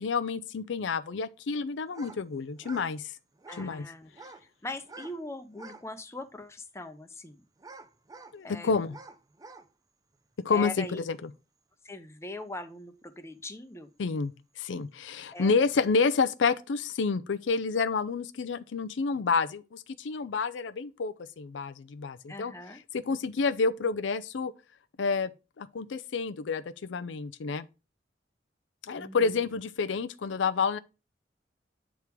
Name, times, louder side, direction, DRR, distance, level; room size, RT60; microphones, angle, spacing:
voice 1, 0.0-3.1 3.6-3.9 8.3-8.9 10.4-11.3 14.0-22.5 22.9-24.5 25.0-25.3 25.6-27.7 28.8-30.8, left 4 dB, 85° left, 0.5 m, -29 dB
sound 1, 1.9-2.2 2.5-2.9 3.4-3.7 4.1-4.5 4.8-5.2 5.5-5.9 6.4-6.5 7.6-8.4 8.9-9.7, right 3 dB, 20° right, 0.5 m, -48 dB
voice 2, 3.5-4.1 4.6-7.4 8.4-8.9 10.5-11.0 11.8-13.9 15.3-15.6 22.3-22.8 28.9-29.5, left 2 dB, 15° left, 0.7 m, -41 dB
8.1 x 3.6 x 4.5 m
head